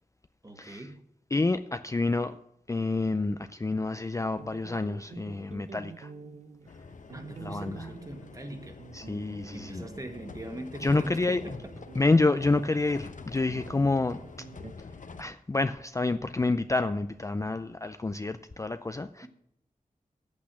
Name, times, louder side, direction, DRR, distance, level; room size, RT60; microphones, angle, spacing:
voice 1, 0.4-1.0 7.1-8.8 9.5-11.7 19.2-19.3, right 1 dB, 25° right, 1.5 m, -42 dB
voice 2, 1.3-2.4 2.7-6.1 7.4-7.8 8.9-9.8 10.8-11.4 12.0-14.2 15.2-19.3, left 3 dB, 20° left, 0.4 m, -28 dB
sound 1, 4.4-14.7, right 5 dB, 55° right, 0.8 m, -47 dB
sound 2, 6.7-15.2, left 4 dB, 65° left, 0.8 m, -46 dB
8.5 x 8.3 x 7.4 m
wide cardioid pair, 100°, 14 cm